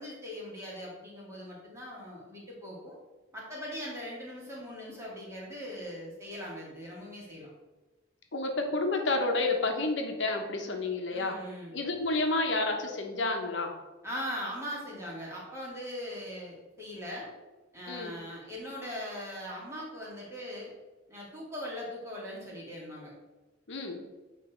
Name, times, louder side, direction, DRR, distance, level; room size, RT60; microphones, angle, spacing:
voice 1, 0.0-3.0 3.3-7.5 11.1-11.7 14.0-17.3 17.7-20.7 21.1-23.1, equal, 15° right, -5 dB, 2.1 m, -40 dB
voice 2, 8.3-11.4 11.7-13.8 17.9-18.1 23.7-24.0, left 2 dB, 70° left, 3 dB, 0.9 m, -30 dB
8.9 x 3.2 x 5.0 m, 1.1 s
head